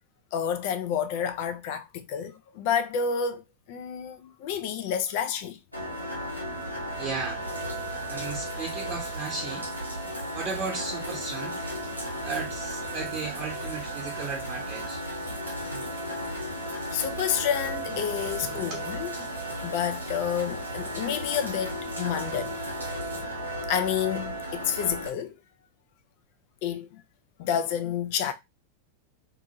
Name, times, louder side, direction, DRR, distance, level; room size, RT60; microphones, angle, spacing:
voice 1, 0.3-3.4 3.7-5.6 16.2-16.6 16.9-19.2 19.6-22.5 23.7-25.3 26.6-27.0 27.4-28.3, left 8 dB, 50° left, 0.5 m, -29 dB
sound 1, 5.7-25.1, equal, 90° left, 1.0 m, -35 dB
voice 2, 7.0-7.4 8.1-9.7 10.3-11.6 12.2-15.0 18.5-18.8, right 5 dB, 30° right, 0.8 m, -35 dB
sound 2, 7.4-23.2, right 2 dB, 75° right, 1.2 m, -43 dB
2.7 x 2.6 x 2.7 m
figure-of-eight pair, 90°, 0 cm